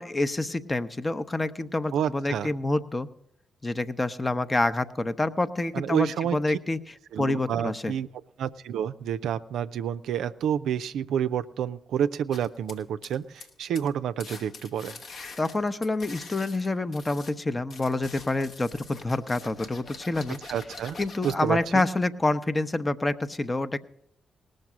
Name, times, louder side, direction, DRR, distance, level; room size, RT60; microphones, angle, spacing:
voice 1, 0.0-3.1 3.6-7.9 15.4-20.4 21.0-23.8, left 2 dB, 30° left, 12 dB, 0.7 m, -27 dB
voice 2, 1.9-2.5 5.7-6.4 7.1-8.1 8.4-15.0 20.5-21.0 21.2-21.9, right 9 dB, 75° right, 11 dB, 0.4 m, -29 dB
sound 1, 12.3-13.5 13.8-13.9 14.2-17.3 17.7-21.6, left 3 dB, 65° left, 1.1 m, -44 dB
18.5 x 6.6 x 6.0 m, 0.73 s
hypercardioid pair, 40°, 0 cm